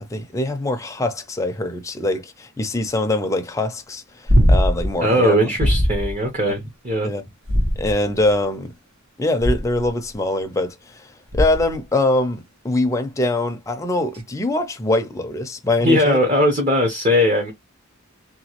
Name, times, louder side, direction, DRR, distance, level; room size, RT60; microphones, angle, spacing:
voice 1, 0.0-5.5 7.0-7.2 7.8-8.7 9.2-16.2, left 2 dB, 15° left, 0.4 m, -23 dB
sound 1, 4.3-4.9 5.6-6.1 7.4-8.2 9.4-9.9 11.3-11.8 14.1-14.2, equal, 75° right, 1.1 m, -19 dB
voice 2, 5.0-7.1 15.8-17.5, equal, 30° right, 0.7 m, -19 dB
2.9 x 2.3 x 2.9 m
head